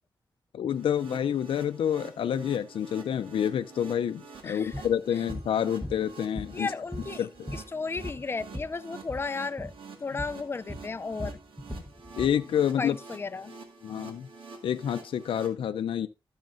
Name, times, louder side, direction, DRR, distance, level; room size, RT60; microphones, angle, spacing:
voice 1, 0.5-6.7 7.2-7.5 12.2-13.0 13.8-14.3 14.6-16.1, left 9 dB, 85° left, 0.5 m, -28 dB
sound 1, 0.7-15.5, right 4 dB, 90° right, 1.9 m, -48 dB
sound 2, 4.7-4.9 5.3-5.5 5.8-6.7 6.9-8.7 9.0-9.3 9.6-9.8 10.2-10.4 10.7-12.4, left 1 dB, 5° left, 1.1 m, -38 dB
voice 2, 6.5-9.7 10.0-11.4 12.8-13.6, left 4 dB, 25° left, 0.4 m, -34 dB
13.5 x 6.5 x 2.6 m
wide cardioid pair, 95°, 9 cm